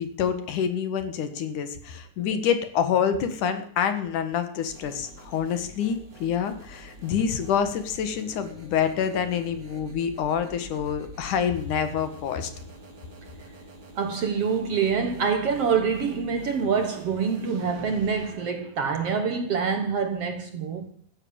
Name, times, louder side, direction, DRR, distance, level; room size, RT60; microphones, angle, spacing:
voice 1, 0.0-12.5, left 7 dB, 65° left, 3.0 m, -27 dB
sound 1, 4.7-18.3, equal, 30° right, 2.2 m, -46 dB
voice 2, 14.0-20.9, right 6 dB, 55° right, 1.9 m, -26 dB
15.0 x 10.5 x 8.8 m
omnidirectional pair, 4.0 m